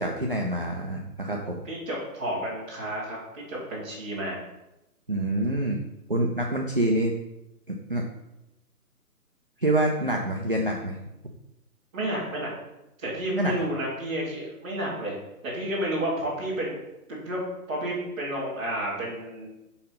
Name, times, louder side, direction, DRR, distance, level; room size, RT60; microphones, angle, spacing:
voice 1, 0.0-1.6 5.1-5.8 6.1-7.1 7.7-8.0 9.6-11.0 13.3-13.5, right 1 dB, 40° right, 0 dB, 0.4 m, -26 dB
voice 2, 1.6-4.4 11.9-12.5 13.0-15.1 15.4-16.8 17.1-17.4 17.7-19.5, right 1 dB, 5° right, -11 dB, 1.1 m, -31 dB
5.6 x 3.8 x 5.6 m, 0.93 s
hypercardioid pair, 170°, 46 cm